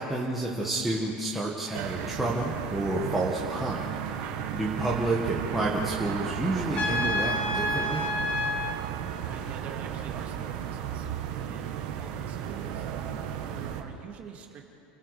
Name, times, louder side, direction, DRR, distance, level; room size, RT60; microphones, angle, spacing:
voice 1, 0.0-8.1, right 2 dB, 5° right, -5 dB, 1.6 m, -30 dB
sound 1, 1.7-13.8, right 9 dB, 60° right, 2.0 m, -34 dB
Trumpet, 6.7-8.8, left 2 dB, 25° left, 1.4 m, -29 dB
voice 2, 9.2-11.1 11.4-12.9 13.5-14.6, right 7 dB, 30° right, 2 dB, 2.4 m, -45 dB
30.0 x 20.0 x 4.9 m, 2.6 s
supercardioid pair, 170°, 5 cm